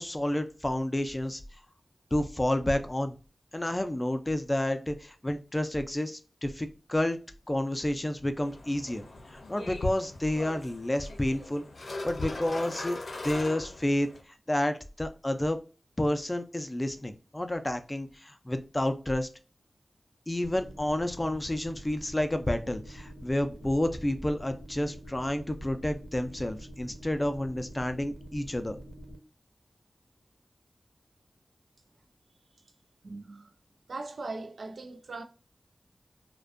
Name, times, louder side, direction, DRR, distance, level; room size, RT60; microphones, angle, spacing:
voice 1, 0.0-1.4 2.1-3.2 3.5-7.2 7.5-9.0 9.3-13.0 13.2-14.1 14.5-15.6 16.0-19.3 20.3-28.8, left 1 dB, 20° left, 0.4 m, -30 dB
sound 1, 8.4-14.2, left 2 dB, 80° left, 0.5 m, -39 dB
sound 2, 20.4-29.2, equal, 50° right, 0.8 m, -46 dB
voice 2, 33.0-33.5 33.9-35.2, right 3 dB, 80° right, 0.4 m, -39 dB
2.5 x 2.2 x 2.3 m
wide cardioid pair, 70°, 0 cm